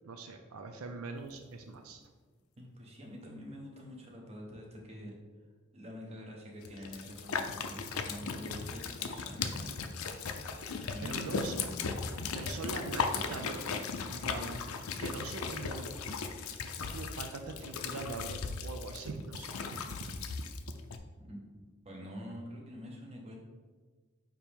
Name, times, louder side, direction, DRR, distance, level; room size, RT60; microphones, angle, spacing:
voice 1, 0.0-2.0 11.0-11.7 12.1-13.7 14.1-14.7 15.0-15.9 16.3-16.6 16.9-20.2, right 3 dB, 85° right, 5 dB, 0.5 m, -42 dB
voice 2, 2.6-5.2 5.7-9.7 10.8-11.4 21.2-21.4 21.8-23.3, equal, 30° right, -1 dB, 1.1 m, -46 dB
sound 1, 6.6-21.0, left 5 dB, 85° left, 0.5 m, -37 dB
8.8 x 3.0 x 3.5 m, 1.4 s
head